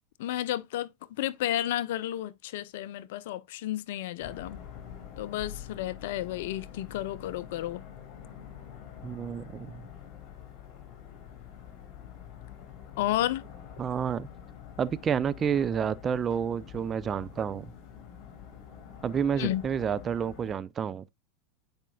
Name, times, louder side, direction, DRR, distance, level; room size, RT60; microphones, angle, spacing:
voice 1, 0.2-4.6 5.2-7.8 13.0-13.4 19.4-19.6, left 13 dB, 65° left, 0.6 m, -32 dB
sound 1, 4.2-20.5, left 9 dB, 45° left, 3.2 m, -46 dB
voice 2, 9.0-9.9 13.8-14.3 14.8-17.7 19.0-21.0, right 7 dB, 30° right, 0.5 m, -29 dB
9.8 x 5.2 x 2.3 m
hypercardioid pair, 90°, 0 cm